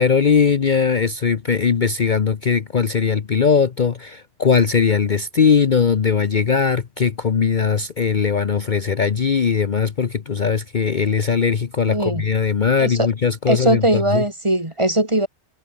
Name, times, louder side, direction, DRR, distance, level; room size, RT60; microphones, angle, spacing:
voice 1, 0.0-14.2, left 6 dB, 45° left, 0.9 m, -19 dB
voice 2, 11.9-12.3 12.8-13.1 13.5-15.3, right 1 dB, 25° right, 2.6 m, -20 dB
omnidirectional pair, 1.2 m